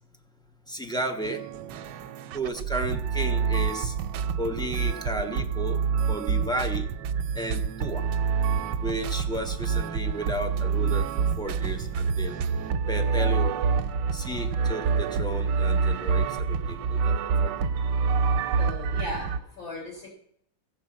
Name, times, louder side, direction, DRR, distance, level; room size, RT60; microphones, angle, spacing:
voice 1, 0.7-1.4 2.3-3.9 4.4-5.8 6.1-6.9 7.3-8.0 8.8-11.1 11.4-12.4 12.9-13.6 14.1-17.1 17.4-17.5, right 1 dB, 5° left, 4 dB, 0.7 m, -33 dB
sound 1, 1.2-19.4, right 5 dB, 75° right, 1.2 m, -27 dB
voice 2, 18.6-20.1, left 1 dB, 80° left, -2 dB, 4.3 m, -37 dB
15.0 x 5.2 x 7.2 m, 0.64 s
omnidirectional pair, 2.0 m